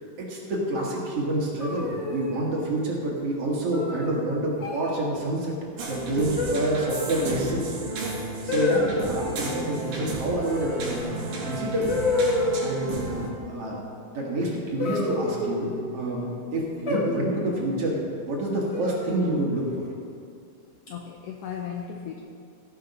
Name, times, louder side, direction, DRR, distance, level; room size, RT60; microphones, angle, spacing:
voice 1, 0.0-5.6 5.9-11.9 12.6-19.7, right 1 dB, 55° right, -3 dB, 2.5 m, -28 dB
sound 1, 1.6-2.5 3.7-4.1 4.6-4.9 6.4-7.0 8.5-9.1 11.0-11.1 11.9-12.9 14.8-15.9 16.9-17.5 18.7-19.3, left 2 dB, 50° left, 0.8 m, -28 dB
sound 2, 5.8-13.3, right 3 dB, 90° right, 3.3 m, -33 dB
voice 2, 20.9-22.2, left 8 dB, 85° left, 2 dB, 1.4 m, -36 dB
16.5 x 5.6 x 5.3 m, 2.4 s
omnidirectional pair, 3.6 m